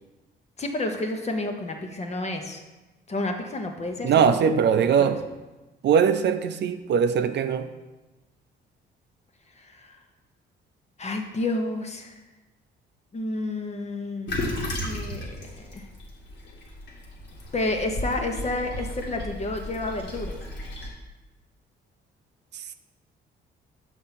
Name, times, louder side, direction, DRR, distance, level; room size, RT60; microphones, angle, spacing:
voice 1, 0.6-2.6 3.1-4.4 9.6-9.9 11.0-12.2 13.1-15.9 17.5-20.4, left 2 dB, 35° left, 4 dB, 1.1 m, -30 dB
voice 2, 4.0-5.2 5.8-7.7 22.5-22.7, right 7 dB, 60° right, 9 dB, 0.5 m, -21 dB
Toilet flush, 14.3-20.9, left 1 dB, 60° left, 1.9 m, -34 dB
6.5 x 4.5 x 5.8 m, 1.1 s
cardioid pair, 90°, 20 cm